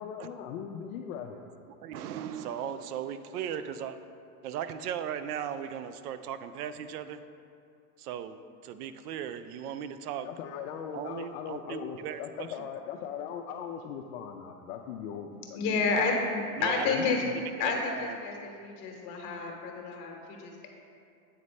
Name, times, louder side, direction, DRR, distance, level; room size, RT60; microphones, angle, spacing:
voice 1, 0.0-1.5 10.2-15.8 16.7-17.4, left 8 dB, 65° left, 1 dB, 0.5 m, -39 dB
voice 2, 1.7-4.1 4.4-7.2 8.0-10.3 10.9-12.7 16.6-16.9 17.6-18.2, right 9 dB, 80° right, 11 dB, 0.5 m, -37 dB
voice 3, 15.5-17.3 17.6-20.7, left 4 dB, 40° left, 1 dB, 1.0 m, -30 dB
8.3 x 4.1 x 3.2 m, 2.5 s
supercardioid pair, 150°, 45 cm